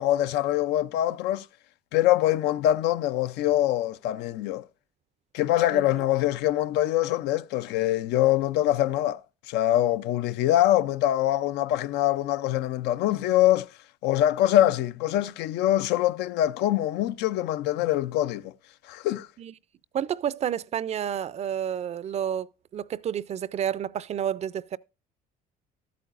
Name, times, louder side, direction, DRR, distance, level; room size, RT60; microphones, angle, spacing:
voice 1, 0.0-1.5 1.9-4.7 5.3-13.7 14.0-18.5 18.8-19.3, left 13 dB, 90° left, 0.4 m, -24 dB
voice 2, 19.9-24.8, right 9 dB, 40° right, 0.4 m, -30 dB
13.0 x 8.5 x 2.5 m
cardioid pair, 110°, 17 cm